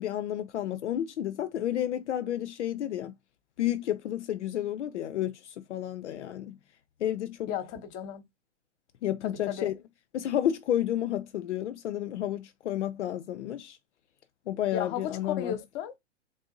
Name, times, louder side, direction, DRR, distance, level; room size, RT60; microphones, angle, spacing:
voice 1, 0.0-3.1 3.6-6.6 7.0-7.5 9.0-9.7 10.1-13.8 14.5-15.6, left 11 dB, 70° left, 0.5 m, -31 dB
voice 2, 7.5-8.2 9.2-9.7 14.7-15.9, left 9 dB, 30° left, 0.9 m, -34 dB
3.5 x 2.5 x 2.6 m
figure-of-eight pair, 115°, 37 cm